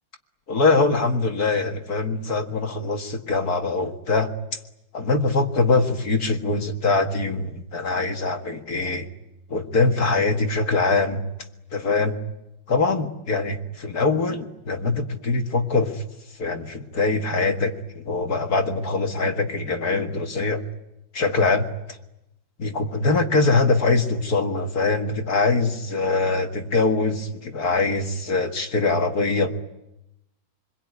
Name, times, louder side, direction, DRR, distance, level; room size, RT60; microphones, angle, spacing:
voice 1, 0.5-4.3 4.9-9.1 9.5-11.2 11.7-12.2 12.7-16.0 16.4-20.6 21.1-21.7 22.6-29.5, left 3 dB, 50° left, 4 dB, 2.2 m, -23 dB
28.0 x 21.5 x 9.6 m, 0.90 s
omnidirectional pair, 2.3 m